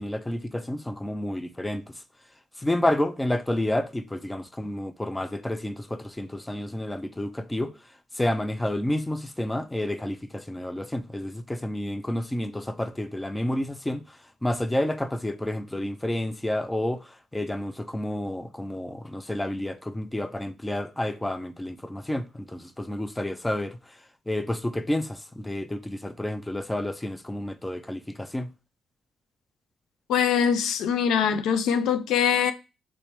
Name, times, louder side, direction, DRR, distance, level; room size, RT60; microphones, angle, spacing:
voice 1, 0.0-1.8 2.6-7.7 8.2-14.0 14.4-23.8 24.3-28.5, left 1 dB, 10° left, 0.4 m, -30 dB
voice 2, 30.1-32.5, left 8 dB, 80° left, 0.3 m, -23 dB
3.2 x 3.1 x 2.9 m
cardioid pair, 90°, 0 cm